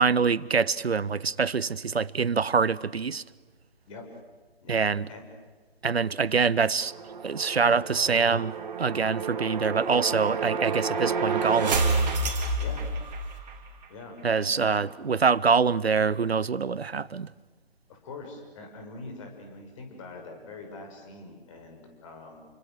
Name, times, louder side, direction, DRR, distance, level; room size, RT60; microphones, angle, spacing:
voice 1, 0.0-3.2 4.7-5.1 5.8-6.9 7.2-11.8 14.2-17.3, right 5 dB, 80° right, 0.8 m, -25 dB
voice 2, 4.6-5.2 12.6-12.9 13.9-14.8 17.9-22.5, left 3 dB, 30° left, 6.4 m, -44 dB
sound 1, 6.8-13.6, right 3 dB, 40° right, 3.8 m, -29 dB
30.0 x 24.0 x 6.6 m
figure-of-eight pair, 145°, 31 cm